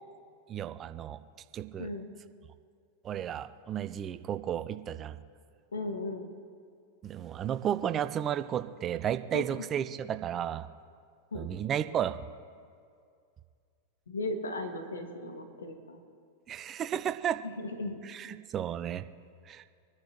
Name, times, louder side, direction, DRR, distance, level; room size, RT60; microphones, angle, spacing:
voice 1, 0.5-1.2 1.5-1.9 3.0-5.2 7.0-10.7 11.3-12.2 16.5-17.4 18.0-19.0 19.5-19.7, right 10 dB, 30° right, 11 dB, 0.6 m, -33 dB
voice 2, 5.7-6.3 9.3-9.4 11.3-11.5 14.1-16.0 17.4-18.0, left 2 dB, 70° left, 5 dB, 1.8 m, -36 dB
26.5 x 10.5 x 3.0 m, 2.3 s
figure-of-eight pair, 90°, 0 cm